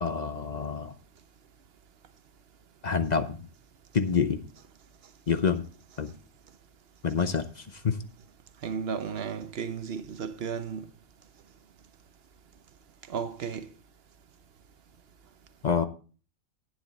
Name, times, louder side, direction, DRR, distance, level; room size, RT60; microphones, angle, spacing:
voice 1, 0.0-0.9 2.8-3.4 3.9-4.4 5.3-5.6 6.0-6.1 7.0-8.0 15.6-15.8, left 5 dB, 45° left, 0.7 m, -27 dB
voice 2, 8.6-10.9 13.1-13.7, right 6 dB, 55° right, 1.0 m, -34 dB
11.0 x 9.2 x 4.0 m
omnidirectional pair, 1.3 m